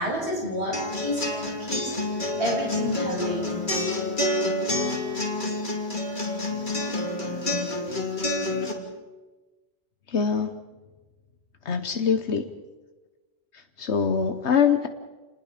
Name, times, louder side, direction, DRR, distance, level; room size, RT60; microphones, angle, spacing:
voice 1, 0.0-3.5, equal, 70° right, -2 dB, 7.3 m, -30 dB
sound 1, 0.7-8.7, left 2 dB, 45° left, 2.9 m, -28 dB
voice 2, 10.1-10.5 11.6-12.4 13.5-14.9, left 6 dB, 80° left, 8 dB, 1.3 m, -24 dB
28.5 x 20.0 x 5.1 m, 1.2 s
omnidirectional pair, 1.1 m